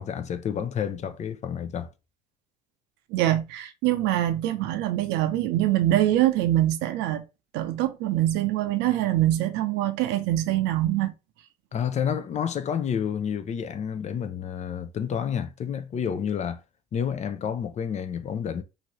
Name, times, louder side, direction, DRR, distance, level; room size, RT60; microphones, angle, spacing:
voice 1, 0.0-1.9 11.7-16.6 16.9-18.6, left 8 dB, 40° left, 0.5 m, -29 dB
voice 2, 3.1-7.2 7.5-11.1, right 14 dB, 75° right, 0.6 m, -24 dB
2.8 x 2.6 x 3.0 m
supercardioid pair, 75°, 18 cm